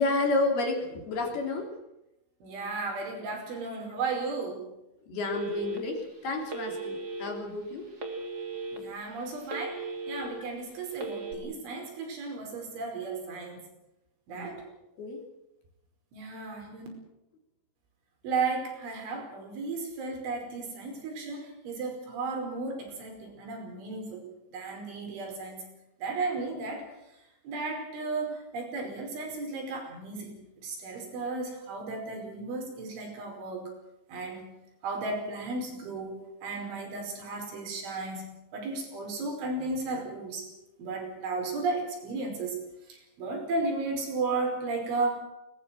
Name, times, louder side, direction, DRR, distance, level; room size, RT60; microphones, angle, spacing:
voice 1, 0.0-1.8 5.0-7.9 14.3-14.7 15.0-15.2, left 2 dB, 55° left, 3 dB, 4.8 m, -30 dB
voice 2, 2.4-4.7 8.7-13.6 14.3-14.6 16.1-16.9 18.2-24.3 24.5-25.7 26.0-26.9 27.5-33.7 34.1-34.5 34.8-40.5 40.8-42.6 42.9-45.2, right 3 dB, 70° right, 2 dB, 7.6 m, -34 dB
Telephone, 5.3-6.0 6.5-7.3 8.0-8.8 9.2-10.3 10.9-11.3, right 3 dB, 25° right, 2.7 m, -37 dB
22.5 x 20.0 x 7.7 m, 0.89 s
omnidirectional pair, 5.7 m